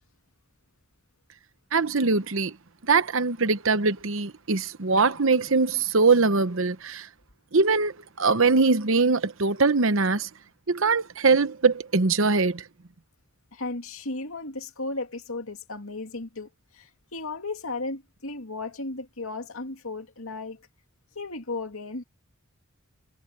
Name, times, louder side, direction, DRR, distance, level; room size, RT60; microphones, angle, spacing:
voice 1, 1.7-2.6 2.9-7.1 7.5-10.3 10.7-12.6, right 4 dB, 60° right, 1.0 m, -22 dB
voice 2, 13.5-20.7 21.1-22.0, left 3 dB, 70° left, 2.5 m, -35 dB
head